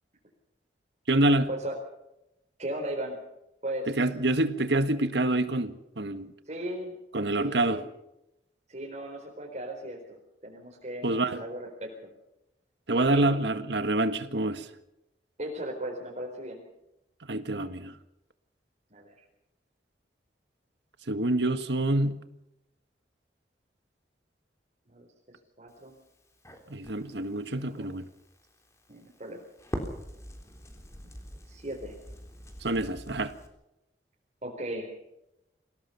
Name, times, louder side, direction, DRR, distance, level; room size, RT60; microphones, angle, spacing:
voice 1, 1.1-1.5 3.9-6.3 7.1-7.8 11.0-11.4 12.9-14.7 17.2-17.9 21.1-22.2 26.7-28.1 32.6-33.3, right 2 dB, 80° right, 1.7 m, -26 dB
voice 2, 2.6-3.2 3.6-3.9 6.5-6.9 7.4-7.8 8.7-10.0 10.4-11.9 12.9-13.3 15.4-16.6 18.9-19.1 24.9-25.1 25.6-25.9 27.6-27.9 28.9-29.4 31.5-31.9 34.4-34.9, right 1 dB, 40° right, 4.4 m, -36 dB
Crackle, 25.7-33.5, equal, 15° left, 3.6 m, -44 dB
27.0 x 18.0 x 5.8 m
head